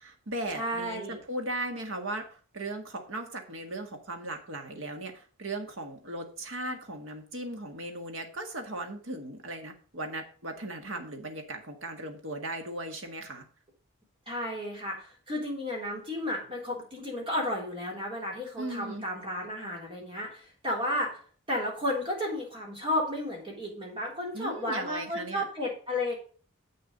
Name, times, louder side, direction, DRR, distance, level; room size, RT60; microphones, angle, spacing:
voice 1, 0.0-13.5 18.6-19.1 24.3-25.5, right 1 dB, 60° right, 4 dB, 1.8 m, -37 dB
voice 2, 0.5-1.2 14.3-21.2 21.5-26.1, left 1 dB, 25° right, -2 dB, 3.5 m, -33 dB
7.9 x 6.9 x 5.3 m, 0.41 s
head